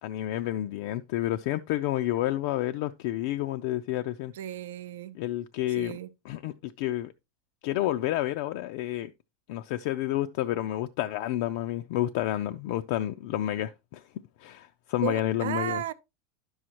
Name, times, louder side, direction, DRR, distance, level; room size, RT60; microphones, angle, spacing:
voice 1, 0.0-4.3 5.2-6.0 6.3-7.1 7.6-9.1 9.5-14.0 14.4-15.8, left 14 dB, 60° left, 0.4 m, -30 dB
voice 2, 4.3-5.2 5.7-6.1 15.0-15.9, right 12 dB, 90° right, 0.6 m, -34 dB
10.0 x 6.3 x 2.9 m
supercardioid pair, 155°, 0 cm